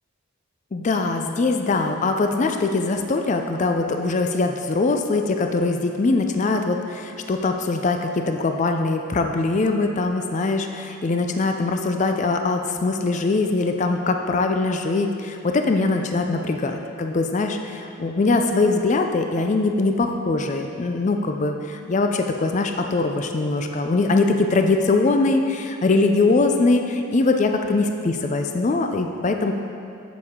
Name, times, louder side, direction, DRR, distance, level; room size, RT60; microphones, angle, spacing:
voice 1, 0.7-29.5, left 3 dB, 35° left, 5 dB, 0.4 m, -22 dB
8.1 x 7.0 x 3.6 m, 2.5 s
head